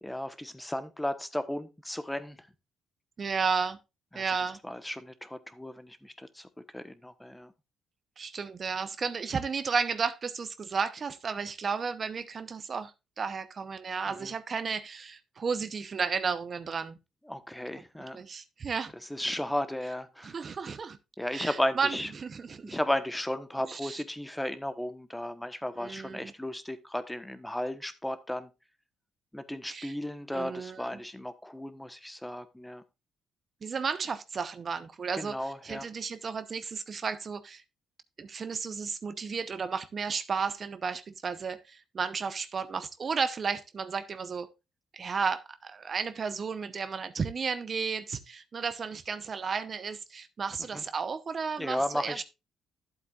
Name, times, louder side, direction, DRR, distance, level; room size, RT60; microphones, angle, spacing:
voice 1, 0.0-2.5 4.1-4.2 4.6-7.5 14.1-14.3 17.3-18.2 19.1-20.4 21.2-22.1 22.6-28.5 29.3-32.8 35.2-35.9 50.6-50.8 51.6-52.2, left 1 dB, 5° left, 1.2 m, -34 dB
voice 2, 3.2-3.8 4.1-4.6 8.2-12.9 13.2-17.0 18.1-18.9 20.2-21.0 21.3-22.8 23.7-24.0 25.8-26.3 29.7-29.9 30.3-30.9 33.6-35.4 35.6-37.6 38.2-44.5 44.9-52.2, right 5 dB, 45° right, 0.8 m, -33 dB
11.5 x 8.0 x 2.5 m
cardioid pair, 90°, 0 cm